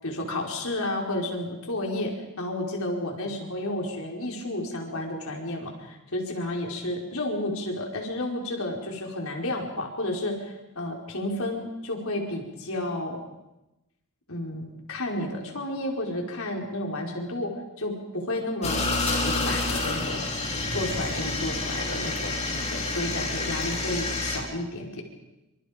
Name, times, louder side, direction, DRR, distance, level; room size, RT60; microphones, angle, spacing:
voice 1, 0.0-13.2 14.3-20.3 20.7-25.0, left 1 dB, 65° left, 1 dB, 5.1 m, -31 dB
sound 1, 18.6-24.4, left 2 dB, 30° left, 6.8 m, -28 dB
27.5 x 26.5 x 5.3 m, 0.96 s
head